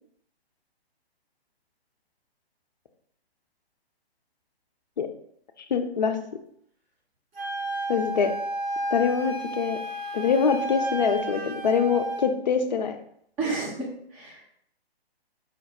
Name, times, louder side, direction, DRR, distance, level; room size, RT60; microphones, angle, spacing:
voice 1, 5.7-6.2 7.9-8.3 8.9-9.8 10.1-13.0, left 6 dB, 45° left, 7 dB, 0.5 m, -24 dB
Wind instrument woodwind instrument, 7.3-12.3, right 2 dB, 65° right, 1.8 m, -32 dB
voice 2, 13.4-14.4, right 3 dB, 15° right, -2 dB, 0.8 m, -31 dB
5.0 x 2.2 x 4.2 m, 0.69 s
figure-of-eight pair, 135°, 32 cm